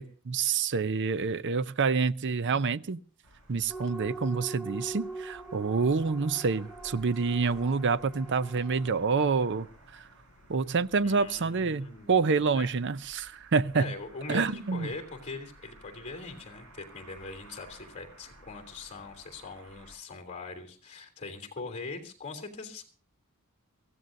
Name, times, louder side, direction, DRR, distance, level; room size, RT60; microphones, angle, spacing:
voice 1, 0.0-3.0 3.5-9.7 9.9-10.0 10.5-13.9 14.3-14.9, right 4 dB, 55° right, 0.6 m, -27 dB
sound 1, 3.2-20.0, right 1 dB, 75° right, 6.0 m, -55 dB
sound 2, 3.7-9.0, right 3 dB, 5° left, 2.1 m, -42 dB
voice 2, 11.0-12.2 12.5-12.7 13.7-22.8, left 3 dB, 35° left, 3.0 m, -41 dB
23.5 x 15.5 x 2.6 m
head